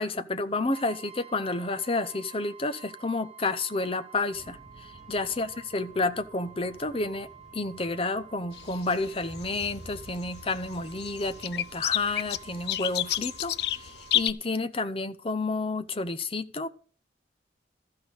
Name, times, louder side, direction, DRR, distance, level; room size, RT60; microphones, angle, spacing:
voice 1, 0.0-7.3 7.5-16.7, left 3 dB, 30° left, 0.8 m, -30 dB
Brass instrument, 0.7-14.3, right 9 dB, 35° right, 1.7 m, -50 dB
sound 1, 4.3-11.5, right 1 dB, ahead, 3.5 m, -52 dB
sound 2, 8.5-14.3, left 13 dB, 60° left, 0.5 m, -31 dB
13.5 x 5.7 x 7.9 m
head